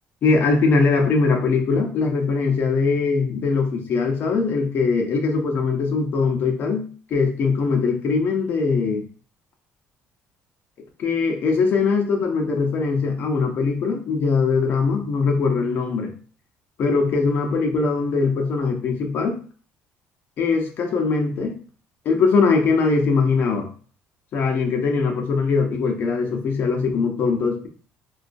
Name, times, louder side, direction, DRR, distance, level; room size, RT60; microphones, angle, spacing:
voice 1, 0.2-6.9 7.1-9.0 11.0-16.1 16.8-19.4 20.4-21.5 22.0-23.7 24.3-27.7, left 4 dB, 50° left, 2 dB, 0.7 m, -21 dB
4.1 x 2.3 x 2.5 m, 0.42 s
cardioid pair, 145°, 5 cm